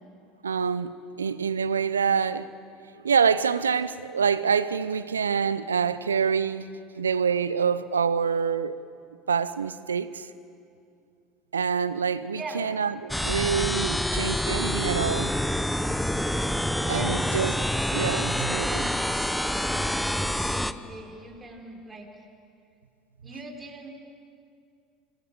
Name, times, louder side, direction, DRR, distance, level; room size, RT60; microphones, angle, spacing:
voice 1, 0.4-2.5 3.0-6.6 7.0-8.8 9.3-10.3 11.5-15.3 16.9-17.5 17.9-18.9, right 6 dB, 90° right, 0.7 m, -26 dB
voice 2, 12.3-12.7 16.6-17.3 18.0-19.0 19.6-22.2 23.2-23.9, right 2 dB, 20° right, 5.1 m, -41 dB
sound 1, 13.1-20.7, equal, 5° left, 1.0 m, -27 dB
26.0 x 19.5 x 7.7 m
hypercardioid pair, 75°, 0 cm